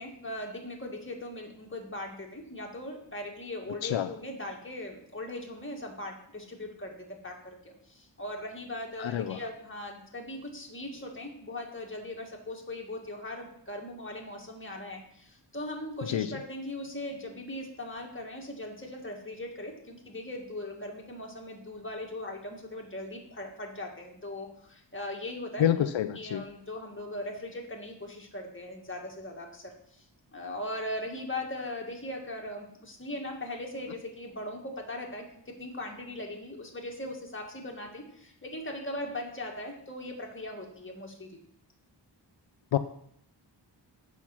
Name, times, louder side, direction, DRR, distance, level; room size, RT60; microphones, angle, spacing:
voice 1, 0.0-25.9 26.2-29.7 30.3-41.4, left 1 dB, 25° left, 0 dB, 2.0 m, -39 dB
voice 2, 9.0-9.4 16.1-16.3 25.6-26.4 42.7-42.8, left 10 dB, 85° left, 10 dB, 0.5 m, -27 dB
8.2 x 6.0 x 5.8 m, 0.70 s
wide cardioid pair, 85°, 45 cm